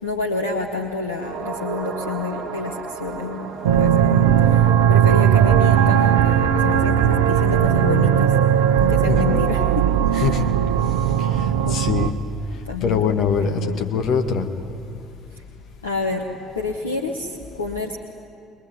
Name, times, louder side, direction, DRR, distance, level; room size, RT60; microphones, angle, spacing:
voice 1, 0.0-8.3 8.8-10.4 11.6-11.8 12.6-13.0 13.4-13.9 15.8-16.3 16.5-18.0, left 3 dB, 80° left, 1 dB, 1.3 m, -28 dB
sound 1, 1.1-9.6 9.9-10.0, right 6 dB, 40° right, 4.2 m, -37 dB
sound 2, 3.6-12.1, right 9 dB, 70° right, 0.8 m, -17 dB
voice 2, 9.1-9.5 10.1-10.4 11.2-11.4 11.7-12.1 12.8-14.5, left 6 dB, 50° left, 6 dB, 1.6 m, -23 dB
23.5 x 22.0 x 9.7 m, 2.5 s
figure-of-eight pair, 55°, 0 cm